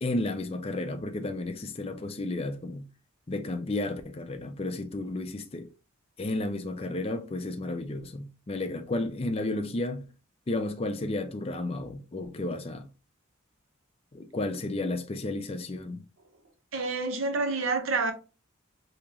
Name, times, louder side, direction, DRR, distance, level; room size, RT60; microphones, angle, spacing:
voice 1, 0.0-2.9 3.3-5.7 6.2-10.0 10.5-12.9 14.1-16.0, left 2 dB, 30° left, 0.4 m, -32 dB
voice 2, 16.7-18.1, right 3 dB, 70° right, 0.8 m, -28 dB
3.7 x 2.9 x 2.8 m
head